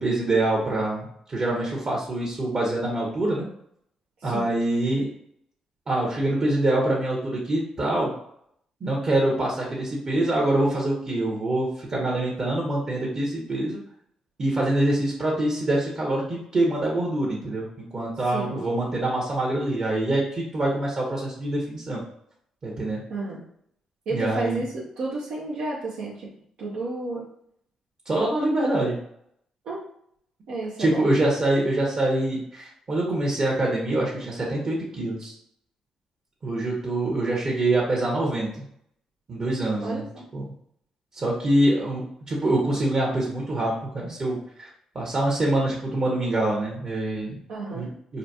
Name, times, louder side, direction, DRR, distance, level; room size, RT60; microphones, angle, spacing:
voice 1, 0.0-3.5 4.2-5.1 5.9-8.1 8.8-13.8 14.4-17.7 17.9-22.0 22.6-23.0 24.1-24.6 28.1-29.0 30.8-35.3 36.4-38.5 39.3-40.0 40.3-40.5 41.1-44.7 44.9-47.4 47.7-48.2, right 1 dB, 45° right, -3 dB, 1.0 m, -25 dB
voice 2, 4.2-4.5 18.3-18.6 23.1-23.4 24.1-26.3 26.6-27.3 29.6-29.8 30.5-31.1 39.8-40.3 47.5-47.9, right 2 dB, 75° right, -6 dB, 0.7 m, -31 dB
3.9 x 2.2 x 2.7 m, 0.69 s
supercardioid pair, 55°, 2 cm